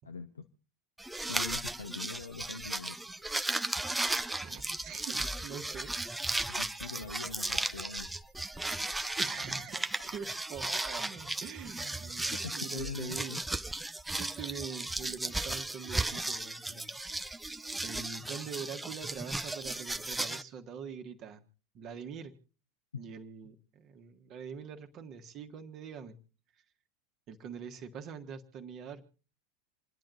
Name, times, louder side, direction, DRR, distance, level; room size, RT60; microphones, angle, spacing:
voice 1, 0.0-0.5 1.3-3.0 6.5-8.1 12.3-13.4, left 5 dB, 75° left, 7 dB, 0.9 m, -42 dB
sound 1, 1.0-20.4, right 2 dB, 5° right, 0.7 m, -35 dB
voice 2, 4.4-5.9 6.9-7.0 9.2-13.4 14.2-16.9 17.8-21.4 21.7-22.3 23.0-26.2 27.3-29.0, right 6 dB, 40° right, 5 dB, 1.8 m, -44 dB
27.5 x 10.5 x 4.0 m, 0.39 s
figure-of-eight pair, 80°, 0 cm